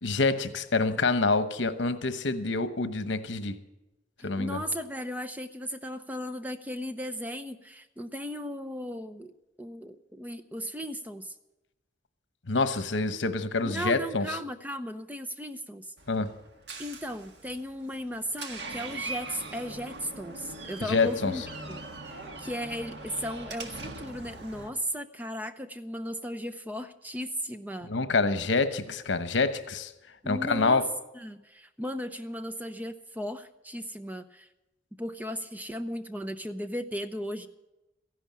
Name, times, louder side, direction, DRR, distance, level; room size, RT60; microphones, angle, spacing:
voice 1, 0.0-3.6 4.2-4.6 12.5-14.3 16.1-16.3 20.9-21.4 27.9-29.9 30.3-30.8, left 3 dB, 80° left, 11 dB, 1.0 m, -27 dB
voice 2, 4.2-9.3 9.6-11.3 13.6-15.9 16.8-21.4 21.7-27.9 30.2-30.8 31.1-34.5 35.0-37.5, equal, 10° right, 9 dB, 0.6 m, -36 dB
Door, 16.0-24.7, right 2 dB, 65° right, 1.7 m, -41 dB
15.0 x 11.5 x 7.4 m, 0.98 s
head